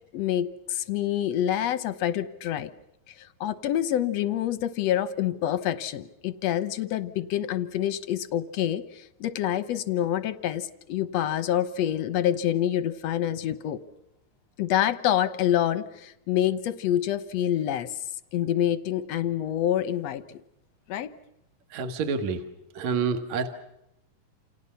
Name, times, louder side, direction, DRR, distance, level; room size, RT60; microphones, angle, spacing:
voice 1, 0.1-2.7 3.2-13.8 14.6-17.9 18.3-20.4 20.9-21.1, left 11 dB, 65° left, 12 dB, 1.9 m, -27 dB
voice 2, 21.7-22.4 22.8-23.5, right 5 dB, 60° right, 7 dB, 2.6 m, -28 dB
29.0 x 28.5 x 5.7 m, 0.84 s
omnidirectional pair, 4.0 m